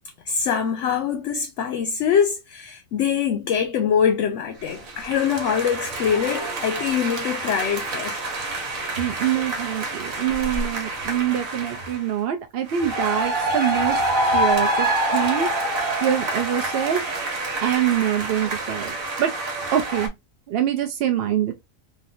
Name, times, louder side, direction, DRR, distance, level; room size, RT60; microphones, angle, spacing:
voice 1, 0.3-8.2, left 7 dB, 70° left, 0.8 m, -23 dB
sound 1, 4.7-12.0 12.7-20.1, right 1 dB, 85° right, 1.4 m, -27 dB
voice 2, 9.0-14.0 14.3-15.7 16.0-17.0 17.6-19.3 19.7-20.1 20.5-21.5, right 10 dB, 65° right, 0.6 m, -24 dB
3.1 x 2.6 x 2.6 m
omnidirectional pair, 1.4 m